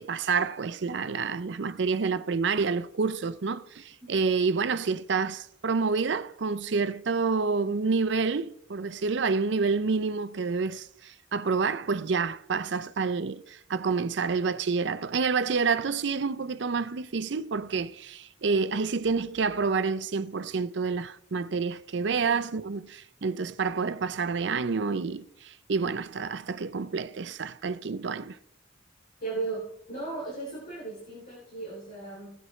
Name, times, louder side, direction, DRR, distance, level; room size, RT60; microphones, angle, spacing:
voice 1, 0.0-28.4, right 4 dB, 65° right, 0.5 m, -28 dB
voice 2, 22.0-22.4 29.2-32.3, right 3 dB, 50° left, 3.3 m, -36 dB
17.0 x 7.8 x 3.2 m
head